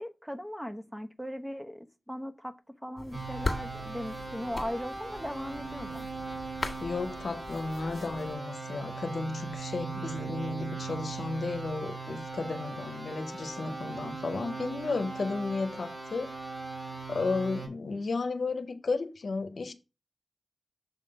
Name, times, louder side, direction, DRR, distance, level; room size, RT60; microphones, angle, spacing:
voice 1, 0.0-6.1 13.6-13.8, equal, 5° right, 0.9 m, -38 dB
sound 1, 3.0-8.3, left 2 dB, 55° left, 1.5 m, -40 dB
sound 2, 3.1-17.7, right 4 dB, 45° right, 4.5 m, -39 dB
voice 2, 6.8-16.3 17.1-19.7, left 3 dB, 85° left, 0.7 m, -33 dB
7.2 x 3.8 x 5.1 m
cardioid pair, 40°, 0 cm